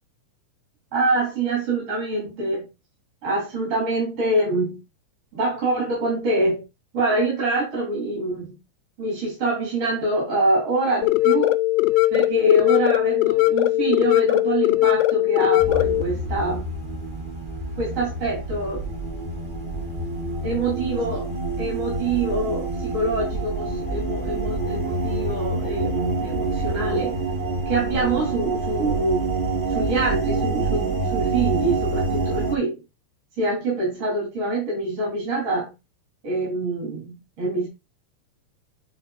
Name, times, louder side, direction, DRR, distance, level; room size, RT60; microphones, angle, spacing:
voice 1, 0.9-2.7 3.2-4.8 5.3-6.6 6.9-8.6 9.0-11.5 12.1-16.7 17.8-18.8 20.4-21.3 21.6-27.2 27.7-29.4 29.7-32.8 33.4-35.7 36.2-37.7, right 2 dB, 50° right, -4 dB, 4.6 m, -25 dB
sound 1, 11.0-16.0, left 18 dB, 85° left, 2.0 m, -19 dB
sound 2, 15.6-32.6, right 3 dB, 30° right, 0.9 m, -27 dB
9.9 x 4.3 x 2.5 m, 0.26 s
omnidirectional pair, 3.5 m